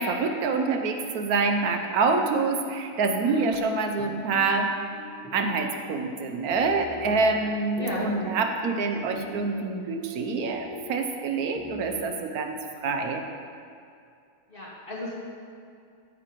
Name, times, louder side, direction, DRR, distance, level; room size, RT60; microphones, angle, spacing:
voice 1, 0.0-4.7 5.3-12.6 12.8-13.2, right 4 dB, 75° right, 5 dB, 1.2 m, -26 dB
voice 2, 3.2-3.6 6.9-7.3 7.8-8.1 14.5-15.1, left 1 dB, 35° left, -5 dB, 2.2 m, -34 dB
sound 1, 4.0-12.2, left 3 dB, 10° right, 1.3 m, -44 dB
13.5 x 9.4 x 3.0 m, 2.4 s
omnidirectional pair, 1.6 m